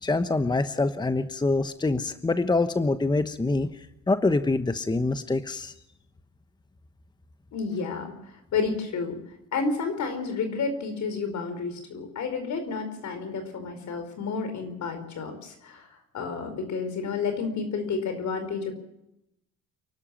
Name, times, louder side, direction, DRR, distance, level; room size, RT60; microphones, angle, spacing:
voice 1, 0.0-5.7, left 3 dB, 15° left, 11 dB, 1.0 m, -25 dB
voice 2, 7.5-9.2 9.5-15.9 16.1-18.7, left 4 dB, 70° left, 8 dB, 5.0 m, -31 dB
28.5 x 12.5 x 7.5 m, 0.86 s
cardioid pair, 90°, 30 cm